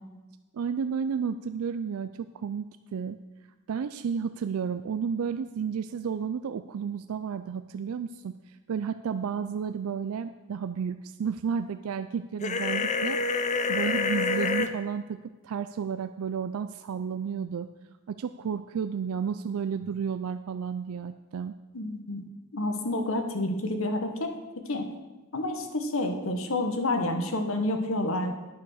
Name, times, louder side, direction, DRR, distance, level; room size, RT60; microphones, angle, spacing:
voice 1, 0.5-2.6 2.9-3.2 3.7-13.4 13.7-15.2 15.4-17.7 18.1-21.5, right 6 dB, 80° right, 10 dB, 0.4 m, -32 dB
sound 1, 12.4-14.7, left 4 dB, 35° left, 0.6 m, -27 dB
voice 2, 21.7-22.2 22.5-24.3 24.7-24.9 25.3-28.4, left 1 dB, 70° left, 5 dB, 1.2 m, -29 dB
9.5 x 6.8 x 6.3 m, 1.1 s
head